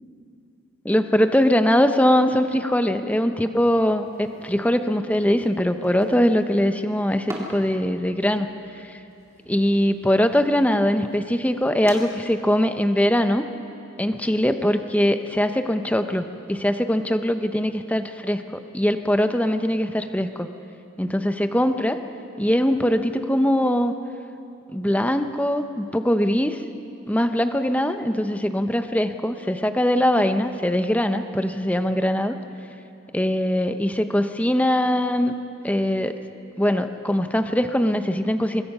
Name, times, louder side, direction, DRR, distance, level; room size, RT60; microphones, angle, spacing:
voice 1, 0.8-8.5 8.8-9.0 9.5-13.4 14.0-20.5 21.0-22.0 22.4-23.9 24.7-26.6 27.1-32.4 33.1-36.2 36.6-38.6, equal, 5° left, 8 dB, 0.7 m, -22 dB
sound 1, 3.8-12.0, right 1 dB, 15° right, 2.4 m, -44 dB
24.5 x 21.0 x 5.5 m, 2.7 s
head